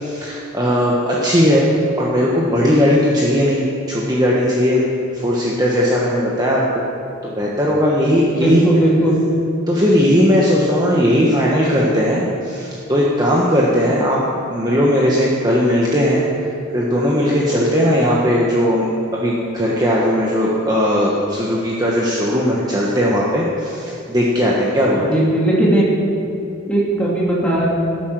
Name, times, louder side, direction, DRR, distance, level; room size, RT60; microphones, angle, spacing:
voice 1, 0.0-4.8 5.1-6.8 7.2-8.6 9.7-14.2 14.5-18.9 19.1-25.2, equal, 20° right, -5 dB, 1.3 m, -17 dB
voice 2, 8.2-9.2 25.1-25.9 26.7-27.7, right 1 dB, 5° left, -6 dB, 2.9 m, -17 dB
17.0 x 9.0 x 6.1 m, 2.7 s
head